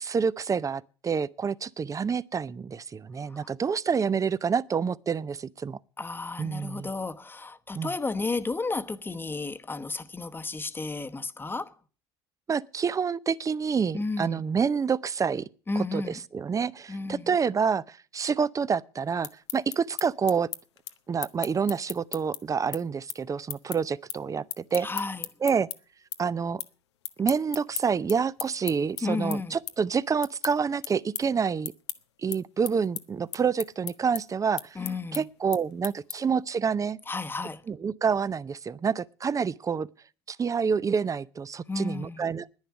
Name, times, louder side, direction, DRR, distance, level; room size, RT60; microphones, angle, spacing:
voice 1, 0.0-5.8 6.4-6.9 7.7-7.9 12.5-15.4 15.9-20.5 21.1-24.9 25.4-25.7 26.2-26.6 27.2-31.7 32.2-34.6 35.1-37.0 37.7-39.9 40.3-42.5, right 6 dB, 25° right, 0.6 m, -28 dB
voice 2, 6.0-11.7 13.9-14.4 15.7-16.2 16.9-17.3 24.8-25.3 29.0-29.6 34.7-35.2 37.1-37.6 41.7-42.3, left 3 dB, 15° left, 1.1 m, -32 dB
sound 1, 19.0-25.8 26.1-26.7 27.0-36.4, left 12 dB, 90° left, 0.9 m, -37 dB
10.5 x 10.0 x 9.5 m
hypercardioid pair, 85°, 14 cm